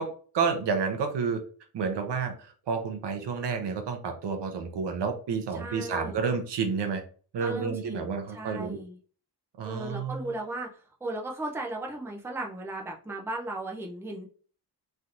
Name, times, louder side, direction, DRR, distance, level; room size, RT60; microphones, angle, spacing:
voice 1, 0.0-1.4 1.7-7.0 7.3-8.8 9.6-10.3, right 5 dB, 80° right, 5 dB, 0.8 m, -30 dB
voice 2, 5.5-6.2 7.4-9.0 9.6-14.3, right 2 dB, 5° right, 0 dB, 0.5 m, -36 dB
3.3 x 2.7 x 2.4 m, 0.41 s
wide cardioid pair, 130°, 42 cm